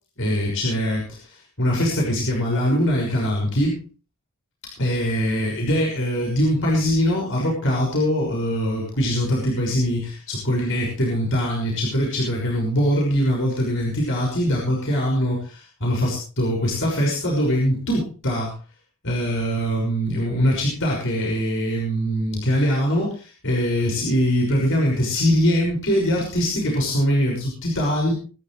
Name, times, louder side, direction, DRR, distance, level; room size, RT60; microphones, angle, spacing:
voice 1, 0.2-3.8 4.8-18.5 19.0-28.1, equal, 60° left, -3 dB, 6.3 m, -22 dB
24.5 x 11.5 x 3.3 m, 0.37 s
head